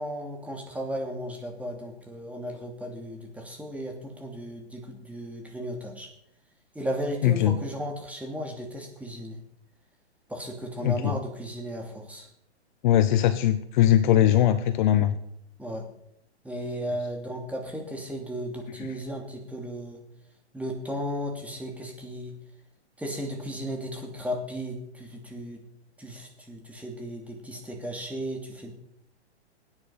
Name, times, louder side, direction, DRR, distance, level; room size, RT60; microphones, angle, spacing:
voice 1, 0.0-6.1 6.7-9.4 10.3-12.3 15.6-15.8 16.4-20.0 20.5-22.3 23.0-25.6 26.0-28.7, equal, 5° right, 2 dB, 2.8 m, -35 dB
voice 2, 7.2-7.6 10.8-11.2 12.8-15.1, left 12 dB, 45° left, 12 dB, 1.0 m, -21 dB
17.0 x 9.8 x 5.7 m, 0.75 s
hypercardioid pair, 125°, 34 cm